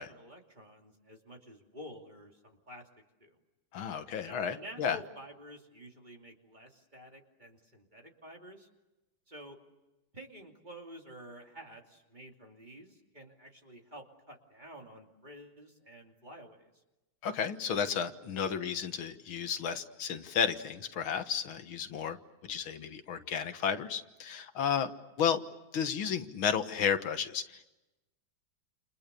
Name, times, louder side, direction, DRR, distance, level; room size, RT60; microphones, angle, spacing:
voice 1, 0.0-2.9 3.2-3.4 4.2-8.7 9.3-9.6 10.1-16.7, equal, 20° right, 1 dB, 2.8 m, -50 dB
voice 2, 3.7-5.0 17.2-22.2 22.4-24.9 25.2-25.4 25.7-27.6, left 7 dB, 85° left, 8 dB, 2.2 m, -32 dB
29.5 x 29.0 x 6.9 m, 1.0 s
omnidirectional pair, 2.2 m